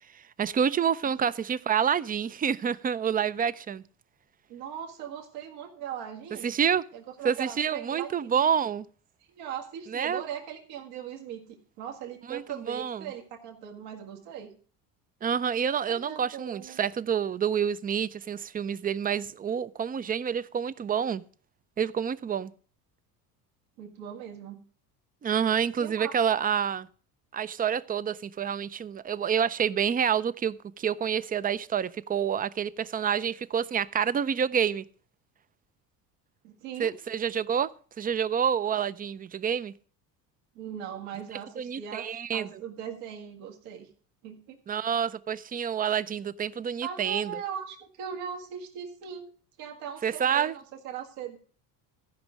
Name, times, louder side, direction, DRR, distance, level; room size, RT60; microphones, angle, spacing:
voice 1, 0.1-3.8 6.4-6.8 7.2-8.9 9.9-10.2 12.3-13.1 15.2-21.2 21.8-22.5 25.2-26.9 27.3-34.8 36.8-37.7 38.0-39.7 41.6-42.6 44.7-47.4 50.0-50.5, right 8 dB, 20° right, 0.4 m, -28 dB
voice 2, 4.5-6.5 6.9-8.4 9.3-14.5 15.9-16.8 23.8-24.6 25.8-26.1 36.4-36.9 40.6-43.9 44.2-44.6 46.8-49.3 49.6-51.4, right 8 dB, 75° right, 2.0 m, -39 dB
14.0 x 5.2 x 6.3 m
hypercardioid pair, 75°, 46 cm